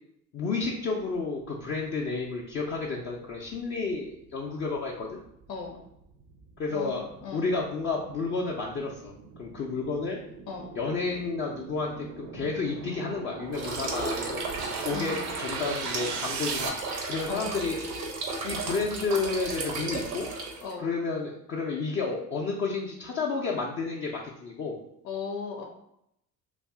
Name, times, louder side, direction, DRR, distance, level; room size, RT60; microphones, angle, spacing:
voice 1, 0.3-5.2 6.6-7.1 7.3-9.1 9.4-10.2 10.8-14.5 14.8-16.8 17.1-17.8 18.4-20.3 20.8-24.8, left 4 dB, 25° left, -3 dB, 0.4 m, -31 dB
sound 1, 2.6-16.7, right 5 dB, 40° right, 0.5 m, -40 dB
voice 2, 5.5-5.8 6.7-7.5 10.5-10.7 14.9-15.2 17.3-17.5 20.6-20.9 25.0-25.6, left 5 dB, 80° left, 1 dB, 0.6 m, -37 dB
sound 2, 13.5-20.7, right 3 dB, 70° right, 0.8 m, -34 dB
2.6 x 2.4 x 3.4 m, 0.76 s
figure-of-eight pair, 65°, 49 cm